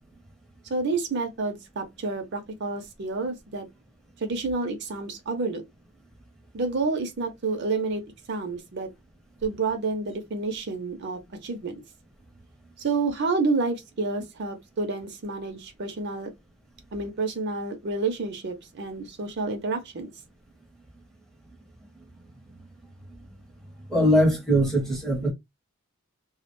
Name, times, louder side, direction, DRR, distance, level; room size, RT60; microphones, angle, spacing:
voice 1, 0.7-3.7 4.2-5.6 6.5-8.0 8.3-8.9 9.4-11.7 12.8-16.3 16.9-20.1, right 3 dB, 50° right, 0.5 m, -29 dB
voice 2, 23.9-25.3, equal, ahead, 0.7 m, -21 dB
2.3 x 2.1 x 2.9 m
head